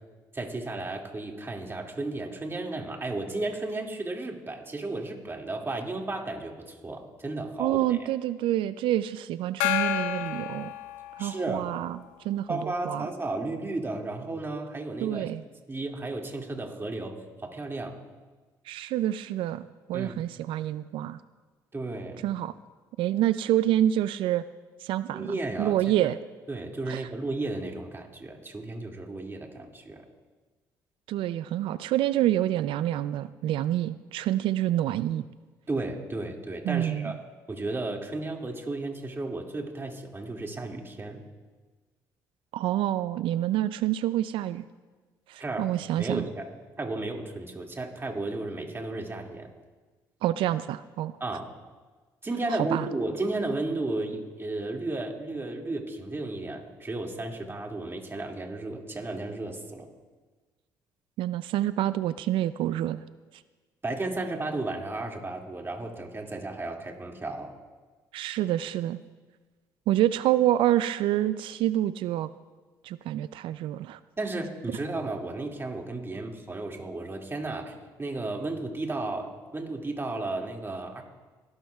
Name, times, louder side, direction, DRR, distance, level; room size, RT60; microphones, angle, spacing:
voice 1, 0.3-8.1 11.2-11.7 12.5-15.3 15.7-18.0 19.9-20.1 21.7-22.2 25.1-25.8 26.5-30.1 35.7-37.1 37.5-41.2 45.4-45.7 46.0-46.5 46.8-49.5 51.2-51.5 52.2-59.9 63.8-67.5 74.2-81.0, right 2 dB, 25° right, 1 dB, 2.3 m, -33 dB
voice 2, 7.6-10.7 11.2-12.0 12.2-13.1 15.0-15.4 18.7-21.2 22.2-22.6 23.0-24.4 24.8-26.2 26.9-27.0 31.1-35.2 36.6-37.2 42.5-44.7 45.3-46.3 50.2-51.2 52.7-52.9 61.2-63.0 68.1-69.0 69.9-72.3 72.8-74.0, right 13 dB, 75° right, 15 dB, 0.4 m, -27 dB
Gong, 9.6-11.6, left 11 dB, 90° left, 0.6 m, -30 dB
25.5 x 12.0 x 2.4 m, 1.3 s
supercardioid pair, 60°, 9 cm